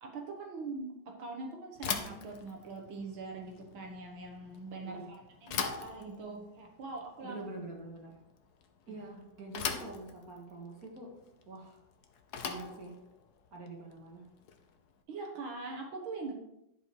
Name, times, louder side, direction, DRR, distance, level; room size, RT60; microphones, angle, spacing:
voice 1, 0.0-5.2 5.4-7.4 8.9-9.0 15.1-16.3, right 3 dB, 80° right, 1 dB, 2.2 m, -42 dB
Bicycle / Thump thud, 1.7-14.9, left 6 dB, 60° left, 1.3 m, -42 dB
voice 2, 7.2-8.2 8.9-11.1 11.5-11.8 12.4-13.0 13.5-14.3, right 2 dB, 45° right, -1 dB, 2.4 m, -46 dB
11.0 x 5.5 x 4.7 m, 0.82 s
omnidirectional pair, 2.2 m